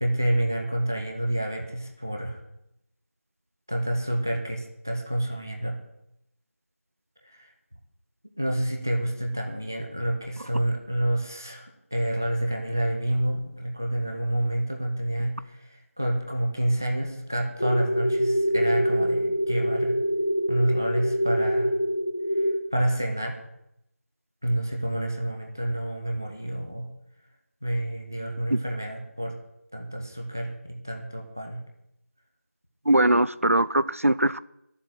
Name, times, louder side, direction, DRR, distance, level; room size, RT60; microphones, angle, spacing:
voice 1, 0.0-2.4 3.7-5.8 7.2-7.5 8.4-19.9 20.5-21.7 22.4-23.4 24.4-26.9 27.6-29.4 29.7-31.6, right 1 dB, 15° right, 0.8 m, -28 dB
sound 1, 17.6-22.6, equal, 40° left, 1.6 m, -25 dB
voice 2, 32.9-34.4, right 1 dB, 70° right, 0.6 m, -21 dB
12.0 x 7.5 x 9.0 m
figure-of-eight pair, 175°, 8 cm